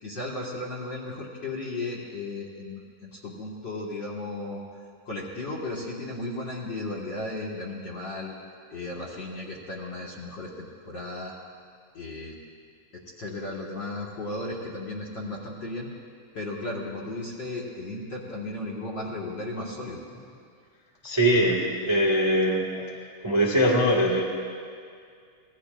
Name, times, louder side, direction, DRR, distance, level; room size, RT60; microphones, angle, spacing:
voice 1, 0.0-4.6 5.0-8.3 8.7-11.3 11.9-12.4 12.9-15.9 16.3-20.0, left 2 dB, 45° left, -4 dB, 1.5 m, -35 dB
voice 2, 21.0-22.9 23.2-24.3, equal, 30° right, -2 dB, 0.5 m, -22 dB
25.5 x 19.0 x 2.5 m, 2.2 s
omnidirectional pair, 4.1 m